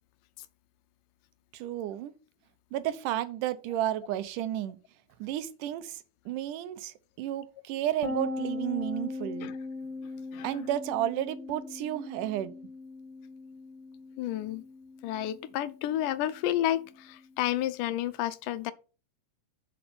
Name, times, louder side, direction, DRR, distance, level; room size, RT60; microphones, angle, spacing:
voice 1, 1.5-2.1 2.7-4.8 5.2-9.5 10.4-12.5, right 12 dB, 85° right, 2.2 m, -32 dB
sound 1, 8.0-17.5, left 3 dB, 20° left, 0.9 m, -40 dB
voice 2, 14.2-14.6 15.0-18.7, left 12 dB, 85° left, 2.2 m, -31 dB
6.8 x 5.4 x 5.8 m
omnidirectional pair, 3.7 m